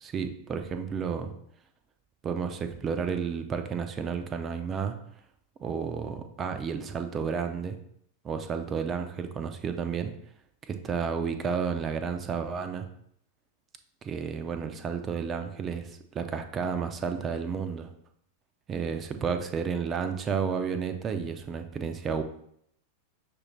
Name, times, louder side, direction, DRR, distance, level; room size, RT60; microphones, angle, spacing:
voice 1, 0.0-1.3 2.2-4.9 5.6-7.8 8.2-10.1 10.7-12.9 14.0-17.9 18.7-22.2, right 6 dB, 25° right, 7 dB, 0.5 m, -31 dB
6.3 x 2.6 x 3.3 m, 0.69 s
figure-of-eight pair, 90°, 0 cm